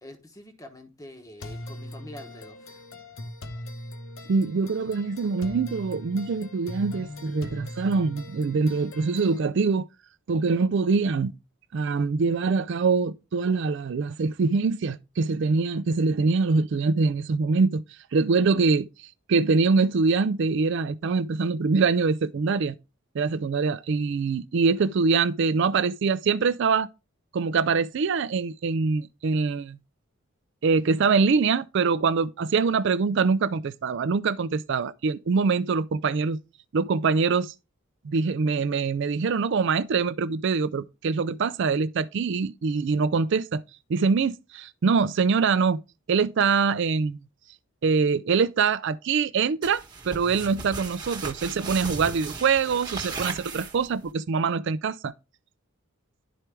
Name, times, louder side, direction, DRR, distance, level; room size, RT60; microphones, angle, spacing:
voice 1, 0.0-2.8, left 1 dB, 15° left, 1.0 m, -45 dB
sound 1, 1.4-9.4, left 1 dB, 70° left, 0.9 m, -40 dB
voice 2, 4.3-9.9 10.3-11.3 11.7-17.8 18.1-18.9 19.3-22.8 23.1-26.9 27.3-29.8 30.6-36.4 36.7-37.5 38.0-43.6 43.9-45.8 46.1-47.2 47.8-55.1, right 4 dB, 60° right, 0.4 m, -24 dB
sound 2, 49.6-54.1, right 4 dB, 20° right, 1.2 m, -36 dB
11.0 x 4.5 x 3.3 m
head